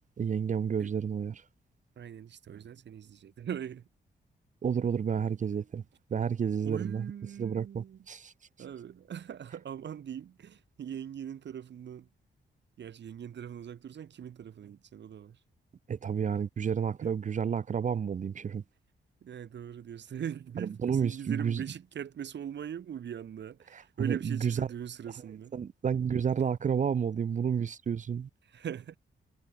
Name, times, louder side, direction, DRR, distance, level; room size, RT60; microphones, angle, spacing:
voice 1, 0.2-1.4 4.6-5.8 6.1-7.0 7.4-8.3 15.9-18.6 20.6-21.6 23.7-24.5 25.5-28.3, right 7 dB, 40° right, 0.5 m, -30 dB
voice 2, 2.0-3.9 6.6-8.0 8.6-12.1 12.8-15.4 17.0-17.1 19.2-25.6 28.4-29.0, right 9 dB, 70° right, 1.7 m, -41 dB
cardioid pair, 85°, 19 cm